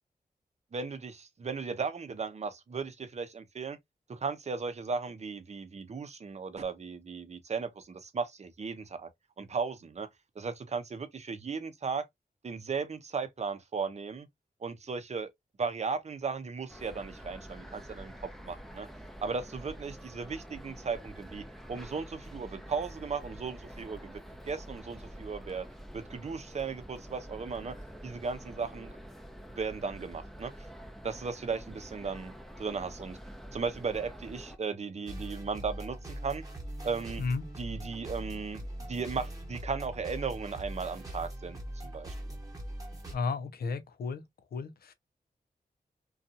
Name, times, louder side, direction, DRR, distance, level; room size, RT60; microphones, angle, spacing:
voice 1, 0.7-3.8 4.1-9.1 9.4-10.1 10.4-12.0 12.4-14.3 14.6-15.3 15.6-18.9 19.2-25.7 25.9-27.7 28.0-29.0 29.6-30.5 31.0-33.2 33.5-36.0 36.2-36.4 36.8-37.2 37.6-41.6 41.8-42.2, right 5 dB, 45° right, 0.6 m, -36 dB
sound 1, 16.7-34.6, equal, ahead, 0.5 m, -47 dB
sound 2, 35.1-43.1, right 1 dB, 25° right, 1.0 m, -41 dB
voice 2, 43.1-44.2 44.5-44.9, left 4 dB, 90° left, 0.5 m, -33 dB
2.6 x 2.3 x 2.6 m
wide cardioid pair, 80°, 15 cm